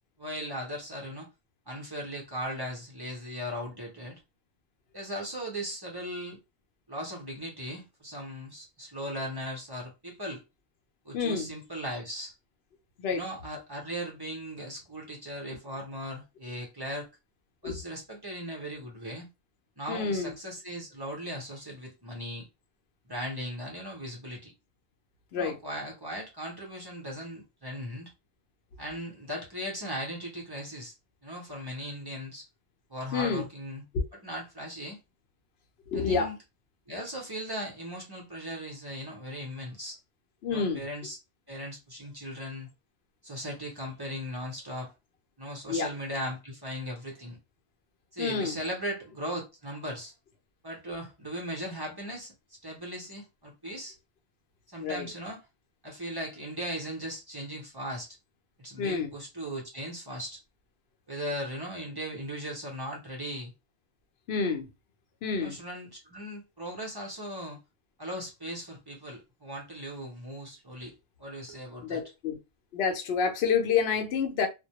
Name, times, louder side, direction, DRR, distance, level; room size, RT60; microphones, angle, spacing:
voice 1, 0.2-1.3 1.7-4.2 4.9-6.4 6.9-10.4 11.0-12.3 13.1-17.1 17.6-19.3 19.8-22.5 23.1-24.5 25.3-28.1 28.8-30.9 31.2-32.5 32.9-33.8 34.2-35.0 35.9-36.4 36.9-40.0 40.5-41.2 41.5-42.7 43.2-44.9 45.4-47.4 48.1-50.1 50.6-53.9 54.7-55.4 55.8-58.1 58.6-60.4 61.1-63.5 65.4-67.6 68.0-70.9 71.2-72.0, equal, 25° right, 0.7 m, -38 dB
voice 2, 11.1-11.5 13.0-13.2 17.6-17.7 19.9-20.3 25.3-25.6 33.1-33.4 33.9-34.0 35.9-36.3 40.4-40.8 45.7-45.9 48.2-48.6 54.8-55.1 58.8-59.1 64.3-64.7 65.2-65.6 71.8-72.4 72.7-74.5, left 5 dB, 85° left, 0.8 m, -28 dB
2.2 x 2.1 x 2.8 m
omnidirectional pair, 1.0 m